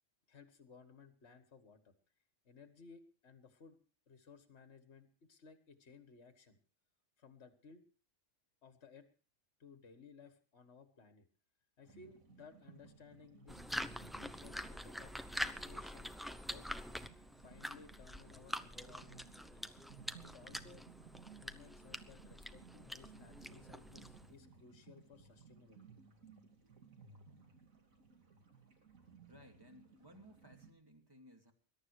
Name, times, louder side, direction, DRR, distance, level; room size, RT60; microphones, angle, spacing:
voice 1, 0.3-1.9 2.5-3.8 4.1-6.6 7.2-7.8 8.6-9.1 9.6-11.3 11.8-15.1 15.4-16.7 17.4-19.8 20.2-20.8 21.4-25.8, left 5 dB, 55° left, 8 dB, 1.9 m, -59 dB
sound 1, 11.8-30.7, right 6 dB, 80° right, 2.8 m, -60 dB
sound 2, 13.5-24.3, equal, ahead, 0.6 m, -45 dB
voice 2, 29.2-31.5, equal, 15° right, 3 dB, 2.6 m, -60 dB
21.0 x 12.0 x 4.7 m, 0.41 s
omnidirectional pair, 1.4 m